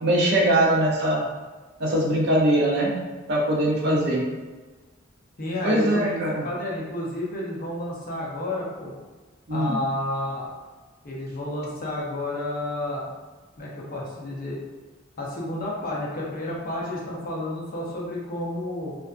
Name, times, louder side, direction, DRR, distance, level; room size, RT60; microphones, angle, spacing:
voice 1, 0.0-1.3 1.8-2.9 3.3-4.2 5.6-6.4 9.5-9.8, right 1 dB, 55° right, -2 dB, 0.5 m, -21 dB
voice 2, 3.8-4.3 5.4-8.9 9.5-10.5 11.0-13.1 13.6-14.6 15.2-19.0, left 1 dB, 45° left, -4 dB, 0.6 m, -31 dB
2.5 x 2.2 x 2.4 m, 1.3 s
head